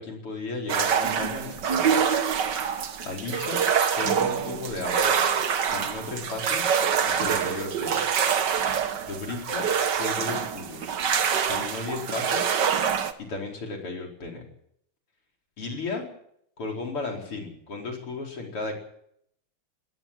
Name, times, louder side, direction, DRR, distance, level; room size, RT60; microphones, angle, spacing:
voice 1, 0.0-1.9 3.0-3.6 3.9-5.1 5.7-6.7 7.1-8.0 9.0-10.9 11.5-12.6 13.3-14.4 15.6-16.1 16.6-18.7, left 3 dB, 85° left, 1 dB, 5.6 m, -34 dB
sound 1, 0.7-13.1, right 7 dB, 55° right, 1.8 m, -25 dB
20.0 x 17.5 x 7.7 m, 0.70 s
omnidirectional pair, 2.4 m